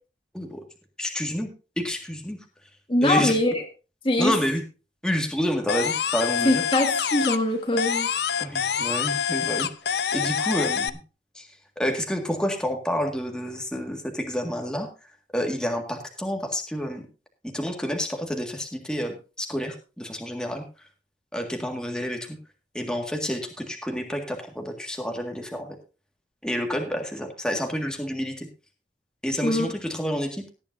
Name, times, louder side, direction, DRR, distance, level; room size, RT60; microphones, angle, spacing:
voice 1, 1.0-1.5 1.8-2.4 3.0-3.4 4.2-4.6 5.0-6.6 8.4-9.7 10.1-11.0 11.3-11.5 11.8-14.9 15.3-17.0 17.5-20.6 21.3-22.2 22.7-25.8 26.4-28.5 29.2-30.5, equal, 5° left, 3 dB, 1.9 m, -29 dB
voice 2, 2.9-3.5 4.0-4.3 6.4-8.1 29.4-29.7, left 1 dB, 30° left, 4 dB, 1.5 m, -22 dB
sound 1, 5.7-7.5 7.8-10.9, left 7 dB, 70° left, 0.6 m, -26 dB
17.5 x 10.5 x 2.7 m, 0.33 s
head